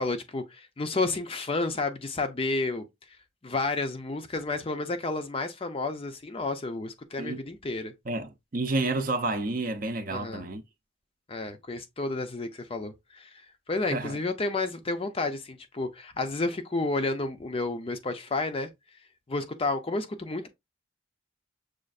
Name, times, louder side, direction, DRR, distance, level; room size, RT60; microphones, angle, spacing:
voice 1, 0.0-2.9 3.4-7.9 10.1-10.5 11.3-13.4 13.7-18.7 19.3-20.5, left 3 dB, 30° left, 0.5 m, -31 dB
voice 2, 8.1-10.6 13.9-14.2, right 2 dB, 45° right, 0.6 m, -30 dB
6.3 x 2.5 x 2.4 m
head